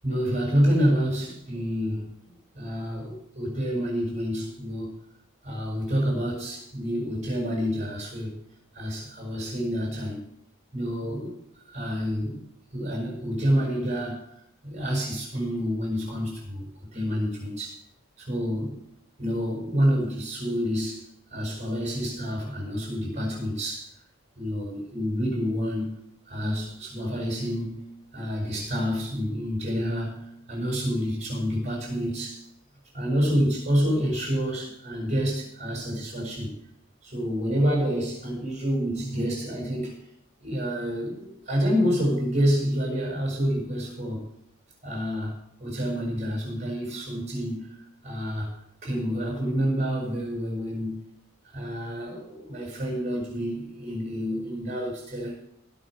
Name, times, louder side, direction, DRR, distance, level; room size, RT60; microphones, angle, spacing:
voice 1, 0.0-5.0 5.4-8.4 8.7-10.2 10.7-11.3 11.7-12.4 12.7-14.3 14.6-16.6 16.9-17.8 18.2-18.8 19.2-23.9 24.4-27.8 28.1-32.4 32.9-36.5 37.0-39.9 40.4-44.3 44.8-48.5 48.8-51.1 51.4-55.4, equal, 35° right, -1 dB, 7.4 m, -28 dB
19.0 x 6.8 x 6.7 m, 0.73 s
head